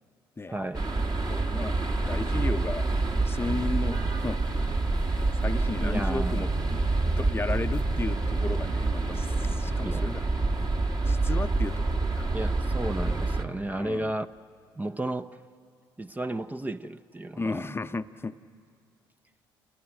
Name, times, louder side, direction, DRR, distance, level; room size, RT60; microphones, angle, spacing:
voice 1, 0.5-0.9 5.8-6.5 9.8-10.1 12.3-14.3 14.7-15.4 16.0-17.7, right 1 dB, 15° right, 0.6 m, -33 dB
sound 1, 0.7-13.4, right 2 dB, 35° right, 1.8 m, -27 dB
voice 2, 1.3-1.8 2.1-2.9 3.3-4.4 5.1-6.8 7.2-10.3 11.0-12.3 13.8-14.1 17.3-18.4, left 3 dB, 20° left, 0.7 m, -34 dB
28.0 x 18.5 x 9.0 m
hypercardioid pair, 55°, 12 cm